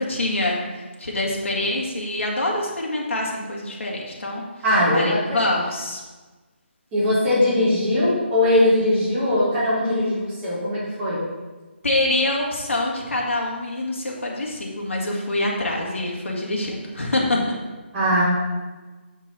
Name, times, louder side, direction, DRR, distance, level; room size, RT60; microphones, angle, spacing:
voice 1, 0.0-4.4 4.9-6.0 11.8-17.4, left 1 dB, 85° left, -2 dB, 2.1 m, -25 dB
voice 2, 4.6-5.4 6.9-11.2 17.9-18.2, left 1 dB, 10° right, -12 dB, 1.9 m, -20 dB
6.7 x 6.1 x 4.2 m, 1.2 s
hypercardioid pair, 180°, 7 cm